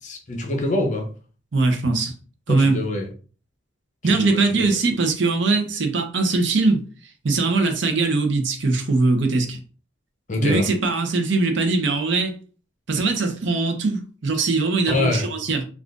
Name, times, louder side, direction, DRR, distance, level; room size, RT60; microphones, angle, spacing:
voice 1, 0.0-1.1 2.6-3.1 4.1-4.6 10.3-10.6 14.9-15.3, left 2 dB, 40° left, 0.7 m, -24 dB
voice 2, 1.5-2.1 2.5-2.8 4.0-6.8 7.2-9.6 10.4-12.3 12.9-15.6, right 3 dB, 65° right, 0.6 m, -21 dB
3.6 x 2.4 x 2.5 m
head